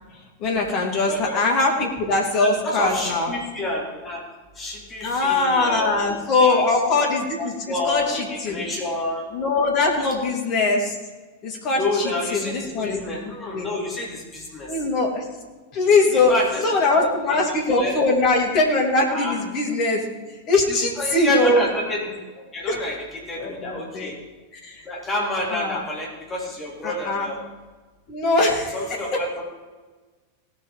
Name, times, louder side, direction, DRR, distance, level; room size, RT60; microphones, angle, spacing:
voice 1, 0.4-3.3 5.0-8.6 9.3-10.9 11.4-11.8 12.3-13.7 14.7-15.2 15.7-16.3 16.6-20.0 20.5-21.6 22.7-22.8 23.4-24.1 24.6-24.8 25.5-25.8 26.8-27.3 28.1-28.7, left 3 dB, 35° left, 0 dB, 3.1 m, -21 dB
voice 2, 1.0-1.4 2.3-4.2 4.5-6.8 7.4-9.3 9.8-10.1 11.8-14.8 16.1-18.0 19.1-19.4 20.7-22.1 22.3-24.2 24.8-27.4 28.7-29.4, left 2 dB, 20° left, -2 dB, 3.3 m, -29 dB
18.0 x 6.6 x 5.1 m, 1.3 s
figure-of-eight pair, 90°, 0 cm